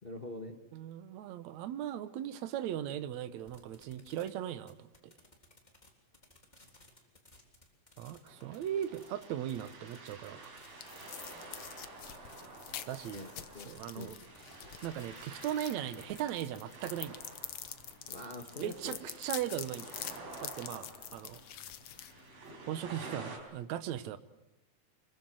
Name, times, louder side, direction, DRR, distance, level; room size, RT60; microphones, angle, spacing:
voice 1, 0.0-0.6 13.1-13.3 13.5-13.7 13.9-14.1 18.1-19.0, left 2 dB, 45° left, 4 dB, 0.6 m, -43 dB
voice 2, 0.7-5.1 8.0-10.6 12.9-13.3 13.6-14.2 14.8-17.2 18.6-20.0 20.4-21.4 22.7-24.2, right 11 dB, 65° right, 13 dB, 2.1 m, -38 dB
sound 1, 3.5-4.3 4.6-5.9 6.1-10.7 11.0-11.7 12.1-13.8 14.1-15.5 15.8-20.0, left 2 dB, 10° left, 3.3 m, -59 dB
sound 2, 8.3-23.4, right 3 dB, 90° right, 6.1 m, -50 dB
sound 3, 10.1-22.8, left 10 dB, 75° left, 1.3 m, -47 dB
26.0 x 22.5 x 7.8 m, 0.93 s
omnidirectional pair, 4.0 m